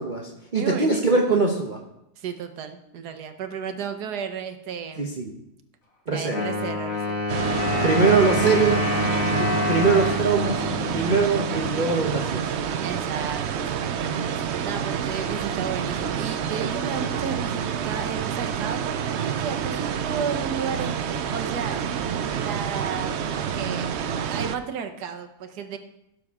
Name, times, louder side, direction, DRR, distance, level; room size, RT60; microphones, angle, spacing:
voice 1, 0.0-1.8 5.0-5.3 6.1-6.5 7.8-8.8 9.2-10.6 10.9-12.5 16.6-16.7, right 4 dB, 35° right, 0 dB, 0.9 m, -22 dB
voice 2, 0.5-1.4 2.2-5.1 6.1-7.2 12.8-23.9 24.3-25.8, right 7 dB, 80° right, 8 dB, 1.5 m, -33 dB
Wind instrument woodwind instrument, 6.3-12.0, left 1 dB, 55° left, 2.2 m, -27 dB
sound 1, 7.3-24.6, right 7 dB, 65° right, 0.7 m, -28 dB
16.5 x 6.8 x 3.6 m, 0.85 s
omnidirectional pair, 1.7 m